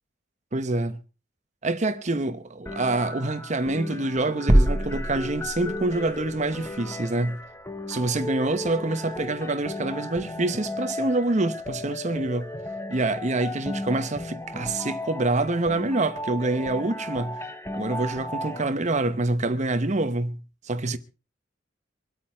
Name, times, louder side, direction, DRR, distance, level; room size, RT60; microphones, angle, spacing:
voice 1, 0.5-1.0 1.6-7.4 7.9-12.5 12.9-17.5 17.7-20.4 20.6-21.0, right 2 dB, 40° right, 0.9 m, -26 dB
sound 1, 2.7-18.7, left 1 dB, 15° left, 1.1 m, -35 dB
sound 2, 4.5-6.1, right 1 dB, 20° right, 1.1 m, -22 dB
25.0 x 8.7 x 4.5 m
head